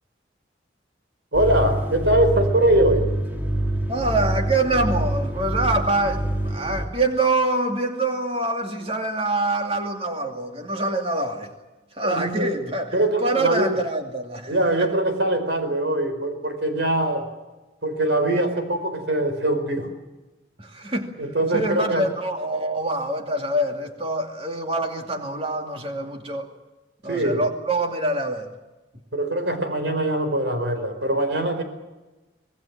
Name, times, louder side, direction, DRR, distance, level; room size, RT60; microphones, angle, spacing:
sound 1, 1.3-6.9, right 1 dB, 10° right, 3.0 m, -26 dB
voice 1, 1.3-3.1 12.0-12.5 12.9-13.8 14.5-17.3 17.8-19.9 21.2-22.1 27.1-27.5 29.1-31.6, right 1 dB, 65° right, 4.6 m, -22 dB
voice 2, 3.9-11.5 12.0-12.9 13.2-14.9 20.6-21.1 21.5-26.5 27.0-28.5, right 2 dB, 30° right, 2.6 m, -25 dB
25.5 x 19.0 x 7.5 m
head